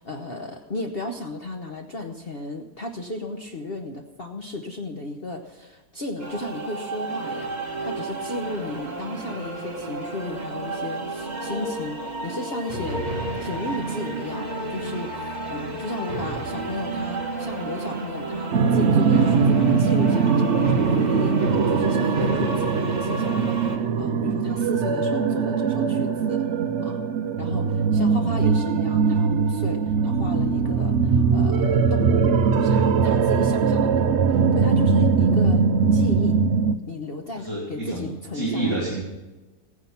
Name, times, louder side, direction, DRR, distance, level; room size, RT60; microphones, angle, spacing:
voice 1, 0.0-13.0 13.4-26.4 26.8-27.0 27.4-36.4 36.9-38.8, left 2 dB, 45° left, 3 dB, 1.0 m, -34 dB
sound 1, 6.2-23.8, right 2 dB, 25° right, 1.6 m, -31 dB
sound 2, 18.5-36.8, right 5 dB, 55° right, 0.8 m, -21 dB
voice 2, 37.4-38.1 38.3-39.0, right 2 dB, 15° left, -7 dB, 3.0 m, -28 dB
15.5 x 9.8 x 5.7 m, 1.1 s
omnidirectional pair, 1.7 m